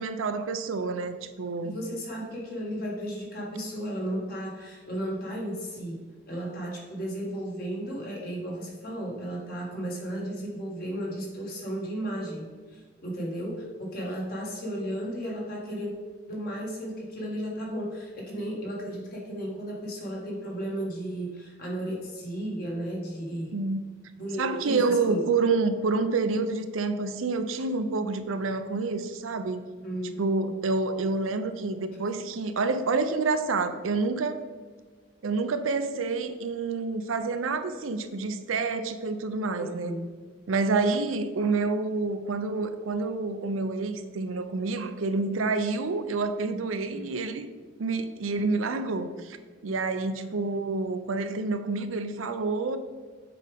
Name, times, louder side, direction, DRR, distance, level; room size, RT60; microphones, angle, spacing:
voice 1, 0.0-1.8 23.5-23.8 24.4-29.6 30.0-34.4 35.2-40.0 40.5-47.5 47.8-49.4 49.6-52.8, right 3 dB, 85° right, 9 dB, 0.5 m, -28 dB
voice 2, 1.6-6.0 6.3-15.9 16.3-23.5 24.2-25.2 29.8-30.2 39.6-40.1 46.9-47.0 50.2-50.3, right 1 dB, 45° left, -2 dB, 1.6 m, -34 dB
6.9 x 4.7 x 3.5 m, 1.5 s
head